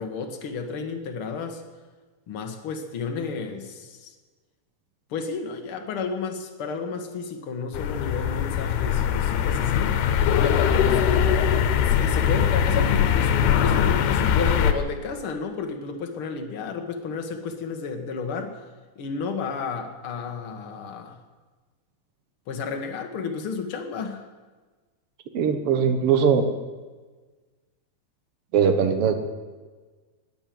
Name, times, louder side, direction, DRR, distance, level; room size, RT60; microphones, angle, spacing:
voice 1, 0.0-1.6 2.3-4.1 5.1-10.0 10.4-11.1 11.9-18.6 19.0-21.2 22.5-24.2, left 5 dB, 55° left, 4 dB, 1.6 m, -32 dB
sound 1, 7.7-14.7, left 8 dB, 85° left, 2.9 m, -21 dB
voice 2, 25.3-26.5 28.5-29.1, right 7 dB, 60° right, 7 dB, 1.6 m, -20 dB
20.5 x 9.0 x 7.7 m, 1.3 s
omnidirectional pair, 4.5 m